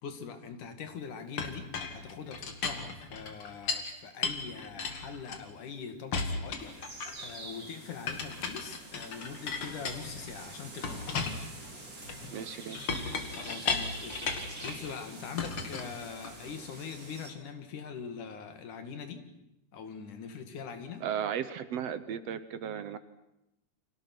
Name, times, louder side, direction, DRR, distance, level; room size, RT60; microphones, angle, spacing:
voice 1, 0.0-11.2 13.3-19.3 19.7-21.1, left 6 dB, 85° left, 8 dB, 3.7 m, -43 dB
Chink clink, 1.4-3.9 4.2-5.7 6.1-7.3 8.1-10.4 10.8-14.9 15.4-16.5, left 4 dB, 45° left, 2.8 m, -36 dB
sound 1, 6.6-17.3, right 2 dB, 25° right, 3.9 m, -47 dB
voice 2, 12.3-12.8 21.0-23.0, right 8 dB, 65° right, 13 dB, 2.0 m, -35 dB
29.5 x 25.5 x 6.1 m, 0.87 s
omnidirectional pair, 3.4 m